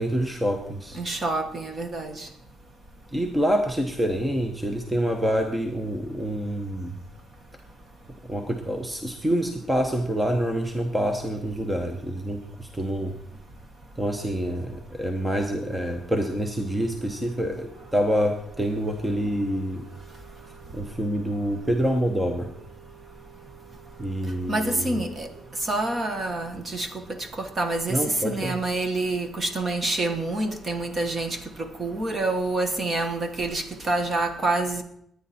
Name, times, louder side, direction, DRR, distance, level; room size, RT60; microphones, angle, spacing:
voice 1, 0.0-1.0 3.1-7.0 8.3-13.1 14.0-19.8 20.7-22.5 24.0-25.0 27.9-28.6, equal, 10° right, 4 dB, 0.9 m, -27 dB
voice 2, 0.9-2.3 24.5-25.3 25.6-26.9 27.2-34.8, right 2 dB, 25° right, 7 dB, 1.3 m, -27 dB
sound 1, 15.4-25.4, right 15 dB, 75° right, 5.1 m, -52 dB
21.5 x 9.5 x 4.3 m, 0.75 s
cardioid pair, 175°, 0 cm